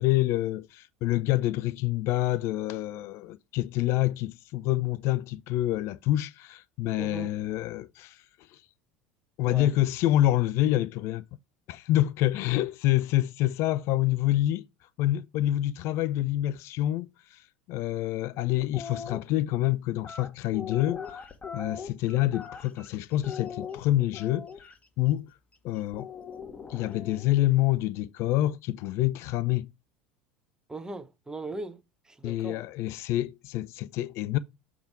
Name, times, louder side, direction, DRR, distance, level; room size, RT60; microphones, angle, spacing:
voice 1, 0.0-8.2 8.5-8.6 9.4-11.2 11.7-14.6 15.0-21.0 21.5-24.5 25.0-25.3 25.6-26.1 26.7-29.7 32.2-34.4, left 14 dB, 55° left, 0.4 m, -27 dB
voice 2, 7.0-7.3 9.5-9.7 30.7-31.8 32.1-32.6, right 2 dB, 10° right, 0.7 m, -38 dB
sound 1, 18.6-19.2 20.0-22.9 23.2-24.7 25.9-27.3, left 6 dB, 25° left, 1.5 m, -40 dB
7.0 x 3.6 x 4.5 m
hypercardioid pair, 75°, 6 cm